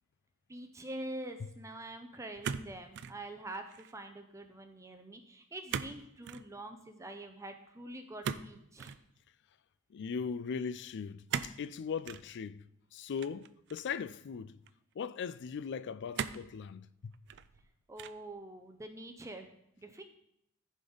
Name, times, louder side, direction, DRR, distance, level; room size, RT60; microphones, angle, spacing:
voice 1, 0.5-9.0 17.9-19.5 19.8-20.0, right 1 dB, 15° right, 0.6 m, -45 dB
sound 1, 2.4-3.2 3.5-4.0 5.7-6.0 6.2-6.5 8.2-9.0 11.3-11.6 12.0-12.3 13.2-14.0 14.7-14.8 16.1-16.5 17.1-17.6 18.0-18.3, right 7 dB, 55° right, 0.4 m, -38 dB
voice 2, 9.9-12.6 12.9-14.6 15.0-17.1, left 6 dB, 55° left, 0.4 m, -39 dB
14.5 x 5.2 x 3.9 m
head